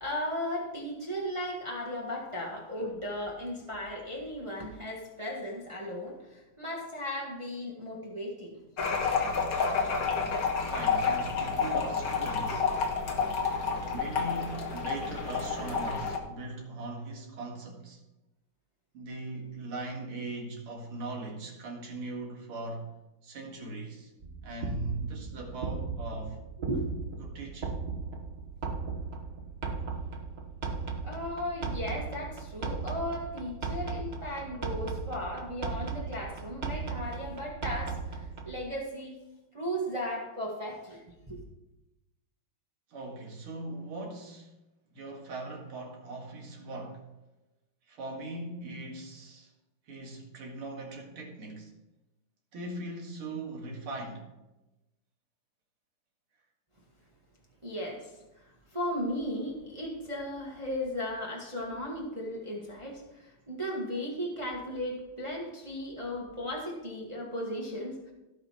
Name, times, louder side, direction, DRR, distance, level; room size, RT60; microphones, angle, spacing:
voice 1, 0.0-8.6 11.0-11.1 26.6-26.9 31.0-39.2 39.5-41.0 41.3-41.4 57.6-58.4 58.7-68.1, equal, 15° right, 1.6 m, -36 dB
sound 1, 8.8-16.2, left 5 dB, 45° left, 1.6 m, -29 dB
voice 2, 10.7-12.7 13.8-18.0 18.9-22.9 23.2-24.1 24.4-26.4 27.2-27.8 42.9-44.5 44.9-47.0 47.9-49.5 49.9-51.7 52.5-54.3, right 2 dB, 80° right, 2.8 m, -40 dB
sound 2, 24.2-38.6, right 4 dB, 40° right, 1.1 m, -37 dB
16.5 x 5.6 x 4.4 m
omnidirectional pair, 2.4 m